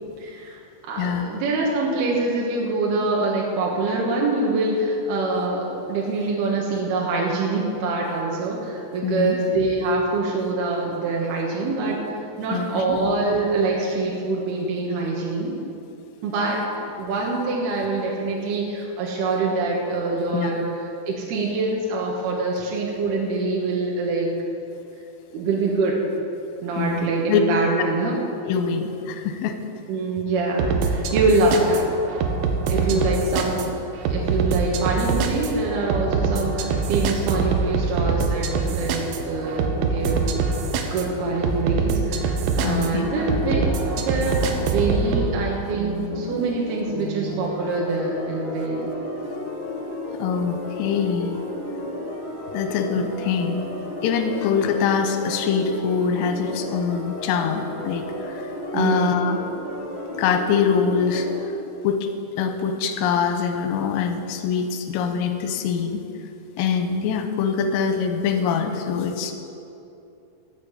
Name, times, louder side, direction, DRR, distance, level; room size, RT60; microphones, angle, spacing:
voice 1, 0.2-12.0 12.4-15.6 16.2-20.6 21.1-24.3 25.3-26.0 26.6-28.2 29.9-31.9 32.7-33.7 34.1-40.2 40.9-48.9 58.7-59.4, right 3 dB, 65° right, -2 dB, 2.9 m, -25 dB
voice 2, 1.0-1.3 9.0-9.4 12.4-13.0 20.3-20.6 26.8-27.4 28.0-28.1 28.5-29.6 32.9-33.1 42.6-43.1 50.1-51.5 52.5-53.7 54.0-59.4 60.2-61.3 61.8-62.1 62.4-66.0 66.6-69.3, left 6 dB, 85° left, 6 dB, 3.5 m, -24 dB
sound 1, 30.6-45.3, right 5 dB, 85° right, 3.5 m, -24 dB
sound 2, 42.8-61.4, left 1 dB, 25° left, 3.3 m, -33 dB
13.0 x 7.4 x 8.0 m, 2.7 s
omnidirectional pair, 5.8 m